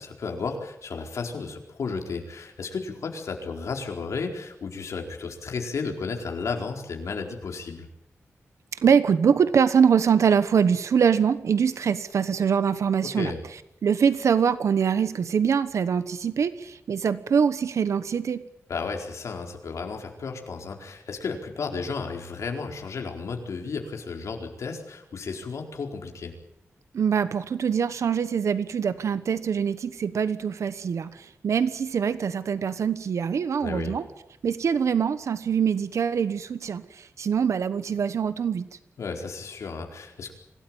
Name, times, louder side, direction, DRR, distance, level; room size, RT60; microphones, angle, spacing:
voice 1, 0.0-7.9 13.1-13.4 18.7-26.4 33.6-34.0 39.0-40.3, left 4 dB, 85° left, 2 dB, 4.4 m, -33 dB
voice 2, 8.8-13.3 13.8-18.4 26.9-34.0 34.4-38.6, right 7 dB, 80° right, 13 dB, 1.2 m, -23 dB
26.0 x 17.5 x 8.9 m, 0.82 s
wide cardioid pair, 140°, 5 cm